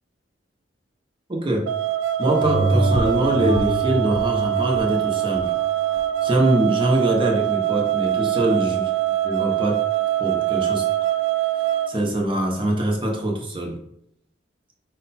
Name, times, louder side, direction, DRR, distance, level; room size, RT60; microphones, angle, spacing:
voice 1, 1.3-1.7 2.2-5.5 6.2-8.9 9.2-9.8 10.2-10.8 11.9-13.8, right 1 dB, 25° right, 1 dB, 0.8 m, -23 dB
sound 1, 1.7-11.9, right 14 dB, 80° right, 0.4 m, -23 dB
sound 2, 2.4-7.4 7.8-7.9, right 1 dB, 80° left, 0.6 m, -27 dB
4.8 x 2.2 x 4.1 m, 0.74 s
head